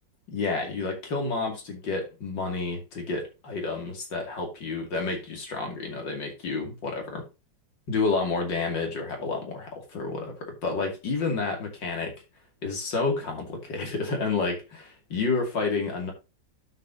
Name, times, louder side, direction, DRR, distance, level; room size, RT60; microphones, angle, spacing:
voice 1, 0.3-7.3 7.9-12.1 12.6-16.1, left 4 dB, 80° left, 3.2 m, -30 dB
11.5 x 6.8 x 2.8 m
omnidirectional pair, 2.0 m